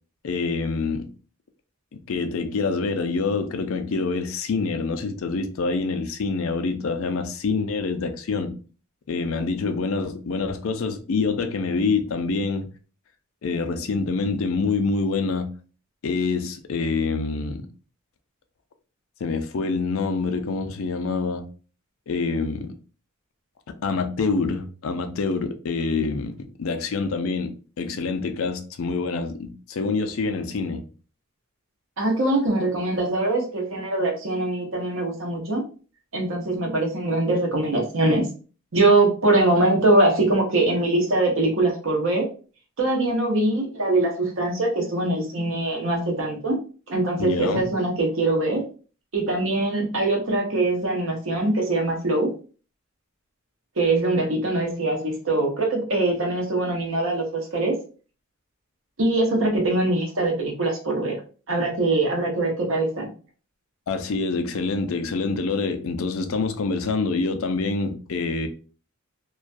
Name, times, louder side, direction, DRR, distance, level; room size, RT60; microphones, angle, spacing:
voice 1, 0.2-1.1 1.9-8.6 9.1-12.7 13.4-15.5 16.0-17.7 19.2-21.5 22.1-22.8 23.7-30.8 47.2-47.7 63.9-68.5, left 4 dB, 70° left, 0.4 m, -26 dB
voice 2, 32.0-35.6 36.1-38.3 38.7-42.3 42.8-46.6 46.9-48.6 49.1-52.3 53.8-57.8 59.0-61.2 61.5-63.1, right 2 dB, 65° right, 0.8 m, -22 dB
2.3 x 2.2 x 2.5 m
head